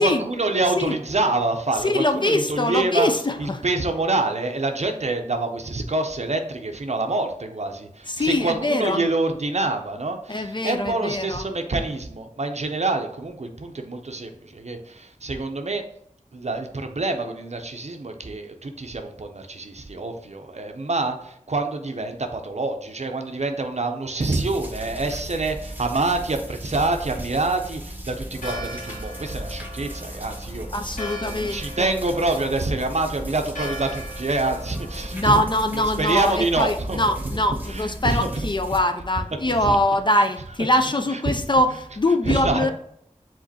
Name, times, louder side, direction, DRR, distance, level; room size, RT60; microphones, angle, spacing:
voice 1, 0.0-3.1 3.4-15.9 16.3-30.7 31.2-35.4 36.0-37.0 37.7-38.4 39.5-39.8 41.1-41.4 42.2-42.7, right 2 dB, 60° right, 0.5 m, -26 dB
voice 2, 1.8-3.6 8.1-9.0 10.3-11.4 30.7-31.9 35.1-42.7, left 1 dB, 35° left, 0.3 m, -23 dB
sound 1, 24.2-38.8, right 1 dB, 15° right, 0.8 m, -36 dB
Church bell, 28.3-37.2, left 1 dB, 80° left, 1.2 m, -39 dB
4.9 x 3.7 x 2.7 m
wide cardioid pair, 45°, 13 cm